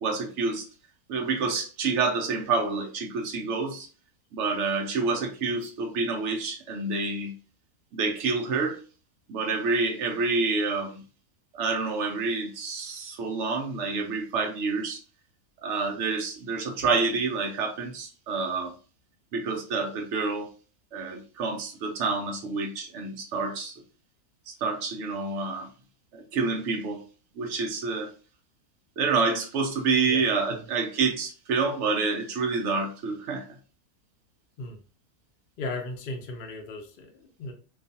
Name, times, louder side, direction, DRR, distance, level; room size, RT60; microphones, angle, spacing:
voice 1, 0.0-0.7 1.1-3.9 4.3-7.3 7.9-8.8 9.3-11.0 11.5-15.0 15.6-18.7 19.3-20.5 20.9-23.7 24.5-25.7 26.1-27.0 27.4-28.1 29.0-33.4, right 4 dB, 65° right, 0.7 m, -28 dB
voice 2, 30.0-30.6 34.6-34.8 35.6-37.5, left 2 dB, 70° left, 0.5 m, -37 dB
2.5 x 2.3 x 2.6 m
omnidirectional pair, 1.6 m